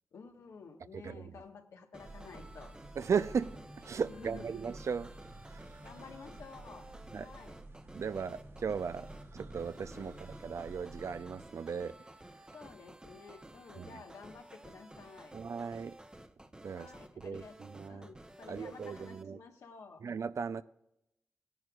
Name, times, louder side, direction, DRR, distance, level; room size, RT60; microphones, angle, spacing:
voice 1, 0.1-2.7 4.1-4.6 5.8-6.9 7.2-7.6 9.9-10.2 12.5-15.3 16.7-17.6 17.9-20.0, left 5 dB, 90° left, 1.4 m, -52 dB
voice 2, 0.9-1.3 3.0-5.1 5.5-5.7 7.1-7.3 7.9-9.1 9.3-12.0 13.8-14.0 15.3-16.0 16.6-16.9 17.2-18.1 18.5-19.4 20.0-20.6, right 6 dB, 70° right, 0.5 m, -37 dB
sound 1, 1.9-19.2, right 1 dB, 15° right, 0.8 m, -54 dB
sound 2, 2.0-11.2, right 2 dB, 50° right, 1.0 m, -52 dB
sound 3, 3.1-11.5, equal, 15° left, 1.0 m, -55 dB
17.5 x 10.5 x 2.4 m
cardioid pair, 45°, 5 cm